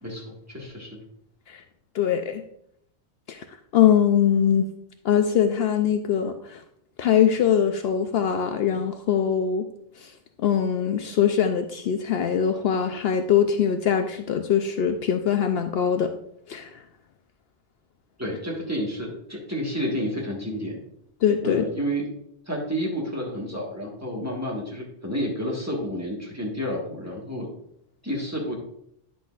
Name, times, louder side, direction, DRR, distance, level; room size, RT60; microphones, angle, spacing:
voice 1, 0.0-1.0 18.2-20.8 21.4-22.1 22.4-27.5 28.0-28.6, equal, 15° right, -2 dB, 1.5 m, -30 dB
voice 2, 1.9-2.4 3.3-3.4 3.7-4.7 5.0-6.6 7.0-9.7 10.0-10.1 10.4-16.1 16.5-16.8 21.2-21.7, left 8 dB, 65° left, 7 dB, 0.7 m, -22 dB
9.9 x 6.1 x 2.4 m, 0.72 s
omnidirectional pair, 1.2 m